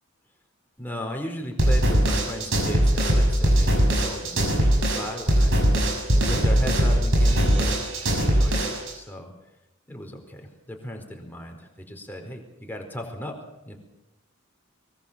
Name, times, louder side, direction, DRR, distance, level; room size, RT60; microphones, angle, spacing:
voice 1, 0.8-5.6 6.1-8.6 8.9-9.3 9.9-13.4 13.6-13.8, equal, 10° left, 2 dB, 4.5 m, -36 dB
sound 1, 1.6-8.9, equal, 65° right, 6.5 m, -21 dB
24.0 x 22.0 x 6.9 m, 0.94 s
head